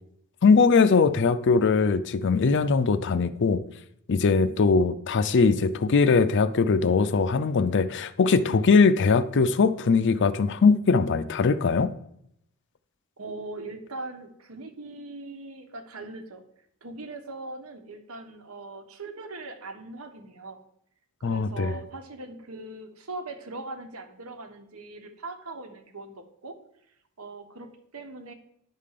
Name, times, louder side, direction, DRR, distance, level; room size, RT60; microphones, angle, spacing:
voice 1, 0.4-3.6 4.1-11.9 21.2-21.7, left 4 dB, 55° left, 0.5 m, -21 dB
voice 2, 13.2-16.4 16.8-20.6 21.2-26.5 27.2-28.3, right 2 dB, 70° right, 1.2 m, -40 dB
10.5 x 3.7 x 6.6 m
head